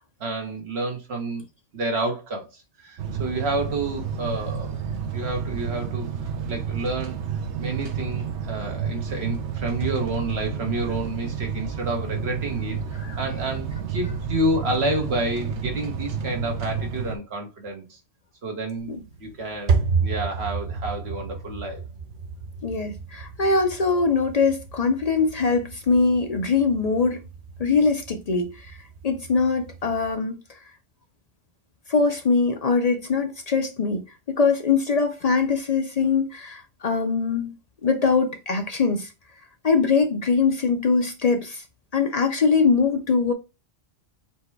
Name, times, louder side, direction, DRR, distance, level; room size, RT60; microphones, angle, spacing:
voice 1, 0.2-1.4 1.7-4.8 5.1-6.1 6.5-7.2 7.6-12.8 13.2-18.0 18.4-18.9 19.2-21.8, right 2 dB, 70° right, 1.4 m, -29 dB
sound 1, 3.0-17.2, right 6 dB, 85° right, 1.0 m, -30 dB
sound 2, 18.8-30.1, right 5 dB, 55° right, 0.7 m, -32 dB
voice 2, 22.6-27.2 27.6-28.8 29.0-30.4 31.9-34.0 34.3-37.6 37.8-39.1 39.6-41.6 41.9-43.3, left 4 dB, 50° left, 0.5 m, -22 dB
4.3 x 2.2 x 4.5 m
omnidirectional pair, 1.1 m